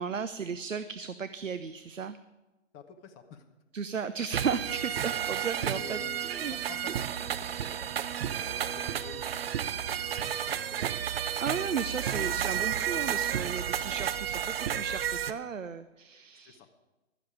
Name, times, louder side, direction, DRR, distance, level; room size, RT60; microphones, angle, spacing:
voice 1, 0.0-2.2 3.7-6.5 11.4-16.6, right 6 dB, 90° right, 12 dB, 0.8 m, -35 dB
voice 2, 2.7-3.4 5.6-6.2 6.5-10.8 12.1-12.5 12.9-13.2 13.8-14.0 16.4-16.7, left 6 dB, 20° left, 4 dB, 1.1 m, -49 dB
sound 1, 4.3-15.3, right 9 dB, 50° right, 0.8 m, -32 dB
16.0 x 12.5 x 5.0 m, 1.1 s
figure-of-eight pair, 135°, 37 cm